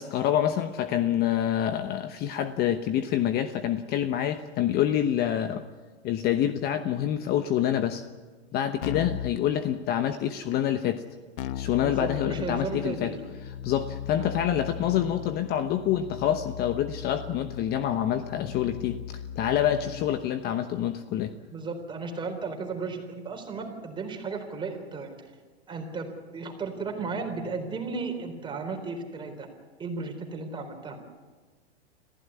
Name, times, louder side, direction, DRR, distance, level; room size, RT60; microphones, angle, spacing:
voice 1, 0.0-5.6 6.0-8.0 8.5-11.0 11.5-13.1 13.6-19.0 19.4-21.3, left 10 dB, 30° left, 10 dB, 1.0 m, -27 dB
Keyboard (musical), 8.8-9.4 11.4-20.3, left 9 dB, 55° left, 1.0 m, -38 dB
voice 2, 11.8-13.2 14.2-14.3 21.5-25.1 25.7-29.5 29.8-31.0, right 4 dB, 15° right, 4 dB, 4.0 m, -34 dB
25.5 x 15.5 x 9.7 m, 1.4 s
hypercardioid pair, 125°, 32 cm